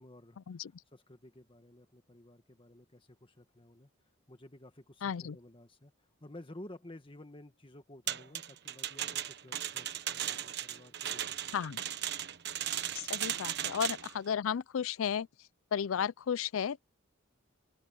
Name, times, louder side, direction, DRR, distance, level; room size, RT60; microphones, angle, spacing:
voice 1, 0.0-3.9 4.3-5.9 6.2-11.5 11.8-11.9, left 1 dB, 25° left, 1.6 m, -53 dB
voice 2, 5.0-5.4 11.5-11.8 12.9-15.3 15.7-16.8, left 7 dB, 75° left, 0.4 m, -33 dB
sound 1, 8.1-14.1, right 11 dB, 55° right, 1.1 m, -37 dB
open air
head